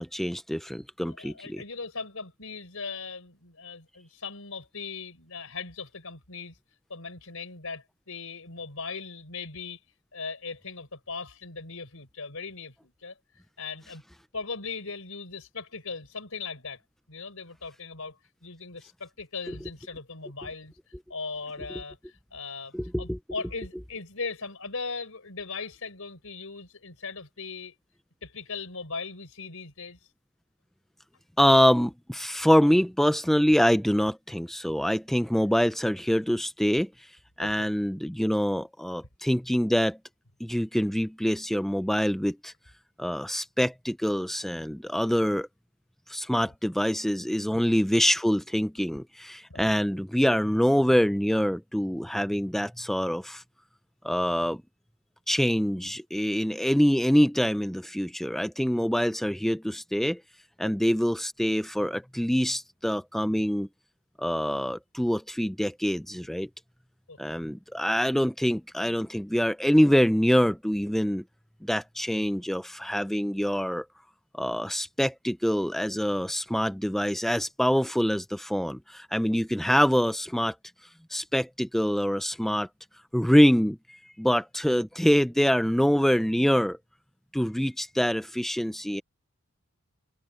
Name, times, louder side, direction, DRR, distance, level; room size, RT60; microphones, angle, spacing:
voice 1, 0.0-1.6 22.7-23.2 31.4-37.1 37.4-40.0 40.4-42.5 43.0-45.5 46.1-53.4 54.0-54.6 55.3-60.2 60.6-63.7 64.2-66.5 67.2-71.2 71.6-73.9 74.3-80.5 81.1-82.7 83.1-86.8 87.3-89.0, equal, ahead, 0.4 m, -25 dB
voice 2, 1.1-6.6 6.9-9.8 10.1-13.2 13.6-14.0 14.3-16.8 17.1-20.7 21.1-27.7 28.2-30.0 37.4-37.7 44.6-44.7 49.5-49.7 60.6-60.7 67.1-67.2, left 4 dB, 70° left, 4.4 m, -39 dB
head